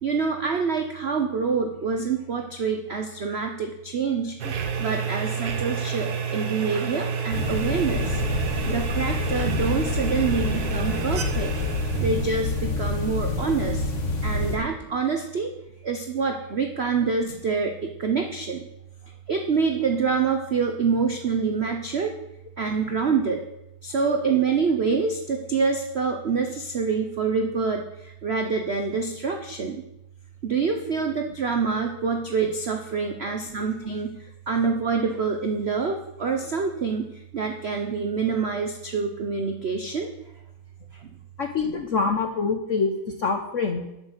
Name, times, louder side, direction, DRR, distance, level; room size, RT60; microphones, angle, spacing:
voice 1, 0.0-8.2 8.7-11.5 11.8-13.8 14.2-15.5 15.8-18.6 19.3-22.1 22.6-23.4 23.8-29.8 30.4-40.1 40.9-41.1, right 5 dB, 80° right, 4 dB, 0.5 m, -26 dB
sound 1, 4.4-13.5, right 6 dB, 55° right, 1.2 m, -30 dB
sound 2, 7.3-14.6, left 3 dB, 35° left, 1.9 m, -27 dB
voice 2, 41.4-42.9 43.2-43.9, left 4 dB, 65° left, 4 dB, 0.8 m, -25 dB
7.7 x 6.5 x 8.0 m, 0.87 s
omnidirectional pair, 2.3 m